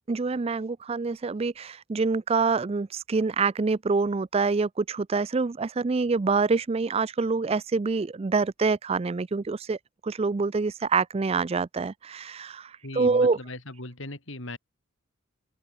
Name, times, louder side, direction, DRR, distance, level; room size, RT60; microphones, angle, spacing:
voice 1, 0.1-9.8 10.0-13.4, right 4 dB, 30° right, 0.4 m, -26 dB
voice 2, 12.8-14.6, left 2 dB, 65° left, 4.2 m, -38 dB
open air
head